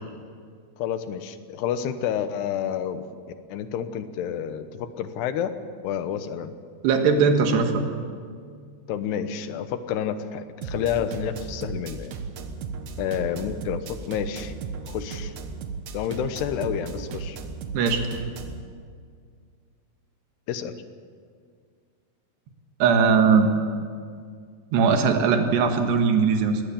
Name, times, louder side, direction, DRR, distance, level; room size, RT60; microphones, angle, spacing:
voice 1, 0.8-3.0 3.5-5.5 5.8-6.5 8.9-12.2 13.0-14.6 14.8-15.3 15.9-17.4 20.5-20.7, left 9 dB, 80° left, 10 dB, 3.1 m, -29 dB
voice 2, 6.8-7.8 17.7-18.1 22.8-23.5 24.7-26.6, right 5 dB, 85° right, 5 dB, 3.8 m, -20 dB
sound 1, 10.6-18.6, right 5 dB, 60° right, 2.1 m, -35 dB
22.0 x 18.0 x 7.1 m, 2.1 s
omnidirectional pair, 4.7 m